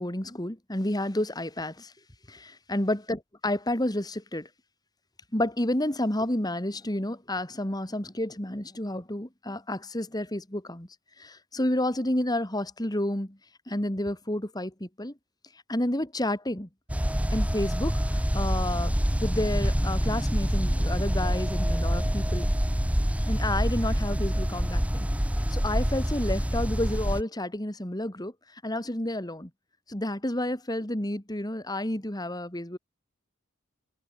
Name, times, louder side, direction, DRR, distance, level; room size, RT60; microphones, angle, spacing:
voice 1, 0.0-1.9 2.3-4.5 5.3-10.9 11.2-13.4 13.7-15.1 15.7-16.7 17.3-22.5 23.2-25.1 25.5-29.5 29.9-32.8, left 1 dB, 20° left, 2.4 m, -30 dB
sound 1, 16.9-27.2, equal, 5° right, 1.3 m, -26 dB
head